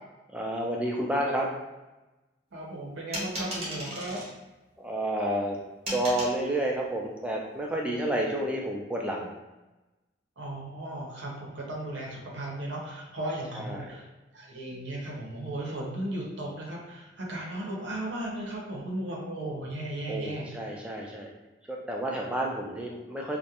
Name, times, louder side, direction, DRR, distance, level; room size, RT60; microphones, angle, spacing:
voice 1, 0.3-1.5 4.8-5.6 5.9-9.3 13.6-14.0 20.1-21.3 21.7-23.4, right 1 dB, 5° right, -2 dB, 0.3 m, -30 dB
voice 2, 2.5-4.2 10.4-14.1 14.3-20.5, right 1 dB, 85° right, -2 dB, 0.7 m, -36 dB
sound 1, 3.1-4.3 5.9-6.4, equal, 35° right, 0.7 m, -35 dB
2.3 x 2.1 x 2.8 m, 1.1 s
head